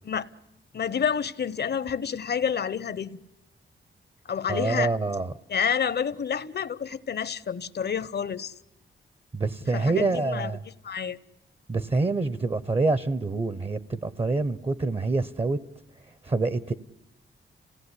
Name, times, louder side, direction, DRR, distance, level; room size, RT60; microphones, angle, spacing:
voice 1, 0.7-3.2 4.3-4.9 5.5-8.5 9.7-10.5 10.8-11.2, left 7 dB, 55° left, 0.9 m, -29 dB
voice 2, 4.5-5.3 9.3-10.6 11.7-15.6 16.2-16.7, right 3 dB, 30° right, 0.8 m, -26 dB
27.5 x 17.5 x 9.8 m
wide cardioid pair, 110°, 20 cm